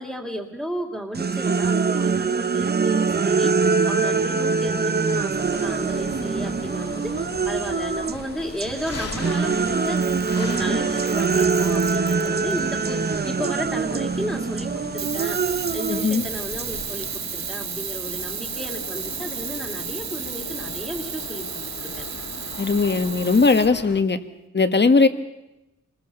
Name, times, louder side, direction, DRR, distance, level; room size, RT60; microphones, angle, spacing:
voice 1, 0.0-15.4 15.7-22.0, equal, 5° right, -2 dB, 2.3 m, -33 dB
sound 1, 1.1-8.2 8.6-17.1, right 5 dB, 35° right, 0.7 m, -24 dB
sound 2, 5.3-24.0, left 4 dB, 55° left, 2.5 m, -38 dB
Camera, 9.9-10.6 11.1-12.6 15.0-23.7, right 7 dB, 65° right, 1.0 m, -33 dB
voice 2, 15.9-16.2 22.6-24.2 24.5-25.1, left 4 dB, 35° left, 9 dB, 1.5 m, -18 dB
27.5 x 20.5 x 6.8 m, 0.96 s
wide cardioid pair, 125°, 30 cm